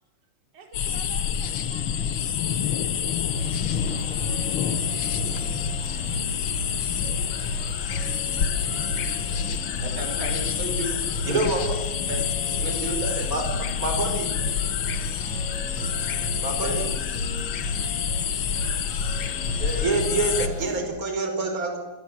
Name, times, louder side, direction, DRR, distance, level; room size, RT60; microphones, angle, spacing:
voice 1, 0.5-3.6, right 5 dB, 45° right, 1 dB, 5.7 m, -49 dB
sound 1, 0.7-20.5, left 8 dB, 80° left, 1.1 m, -28 dB
sound 2, 3.3-20.8, left 1 dB, 50° left, 8.1 m, -34 dB
voice 2, 9.8-11.5 12.1-12.2 12.5-13.3 16.6-16.9 19.6-19.9, right 2 dB, 85° right, 4 dB, 7.8 m, -33 dB
voice 3, 11.3-11.9 13.3-13.4 13.8-14.3 16.4-16.8 19.8-21.8, right 3 dB, 20° right, 4 dB, 5.5 m, -26 dB
27.0 x 23.0 x 7.7 m, 1.1 s
omnidirectional pair, 4.1 m